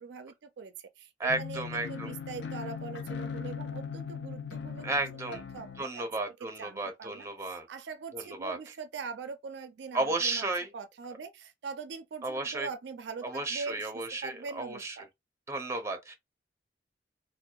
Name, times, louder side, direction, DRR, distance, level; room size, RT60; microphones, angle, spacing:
voice 1, 0.0-4.9 5.3-6.1 6.4-15.1, right 5 dB, 70° right, 0.4 m, -42 dB
voice 2, 1.2-2.1 4.8-5.4 5.8-7.7 8.1-8.6 9.9-10.7 12.2-12.7 13.2-15.0 15.5-16.1, right 2 dB, 15° right, 0.5 m, -33 dB
sound 1, 1.3-5.8, left 6 dB, 75° left, 0.4 m, -39 dB
2.6 x 2.1 x 2.2 m
head